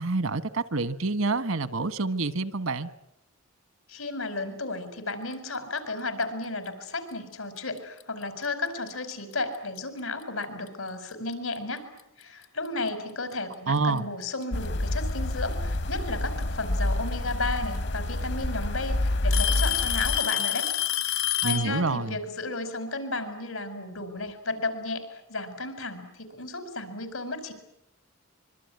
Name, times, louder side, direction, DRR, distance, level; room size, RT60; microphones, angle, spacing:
voice 1, 0.0-2.9 13.7-14.1 21.4-22.2, right 3 dB, 80° right, 14 dB, 1.3 m, -27 dB
voice 2, 3.9-11.9 12.2-20.7 21.1-27.5, left 2 dB, 90° left, 10 dB, 5.0 m, -33 dB
Alarm / Tick-tock, 7.8-8.0 8.9-9.0 9.8-9.9 11.5-11.6 12.9-13.0 14.2-14.7 16.4-16.5 17.7-17.8 18.2-18.6 19.3-21.7, left 13 dB, 75° left, 1.9 m, -27 dB
sound 1, 14.5-20.2, left 1 dB, 55° left, 1.0 m, -28 dB
25.0 x 24.0 x 9.5 m, 0.80 s
head